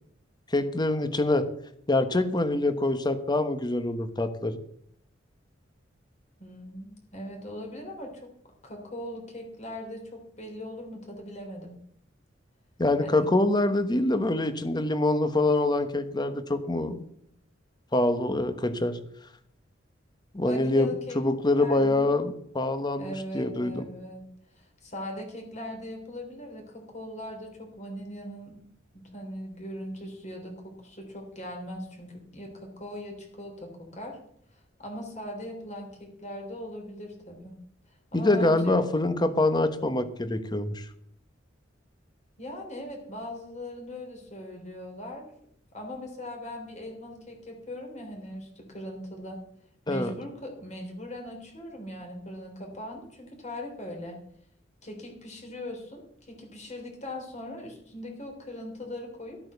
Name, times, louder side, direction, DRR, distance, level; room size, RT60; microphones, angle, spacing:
voice 1, 0.5-1.5 1.9-4.6 12.8-17.0 17.9-19.0 20.3-23.9 38.1-40.8 49.9-50.1, left 2 dB, 25° left, 10 dB, 1.1 m, -25 dB
voice 2, 6.4-8.3 8.6-11.8 13.0-13.3 20.4-21.2 21.6-22.1 23.0-24.3 24.6-28.6 28.9-34.2 34.5-37.6 38.1-38.8 42.4-45.3 45.7-49.4 49.9-54.2 54.8-59.4, left 1 dB, 40° left, 2 dB, 3.5 m, -40 dB
13.0 x 8.9 x 6.8 m, 0.68 s
head